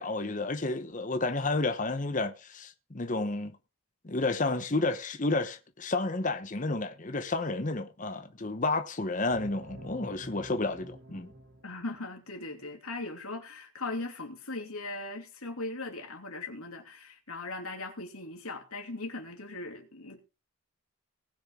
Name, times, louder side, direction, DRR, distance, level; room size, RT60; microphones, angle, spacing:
voice 1, 0.0-3.5 4.0-11.3, left 3 dB, 35° left, 0.9 m, -31 dB
sound 1, 9.2-12.0, right 1 dB, 65° right, 2.2 m, -48 dB
voice 2, 11.6-20.2, left 2 dB, 85° left, 2.7 m, -39 dB
19.0 x 6.4 x 3.7 m
head